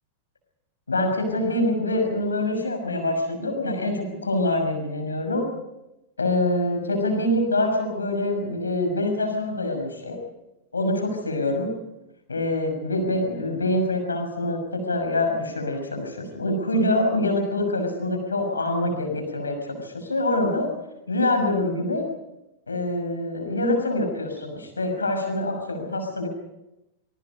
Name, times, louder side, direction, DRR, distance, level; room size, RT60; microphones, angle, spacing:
voice 1, 0.9-5.5 6.2-10.2 10.7-11.7 12.3-20.7 21.1-22.1 22.7-26.3, left 1 dB, 75° left, 5 dB, 6.0 m, -25 dB
26.0 x 23.0 x 5.4 m, 0.92 s
figure-of-eight pair, 90°, 0 cm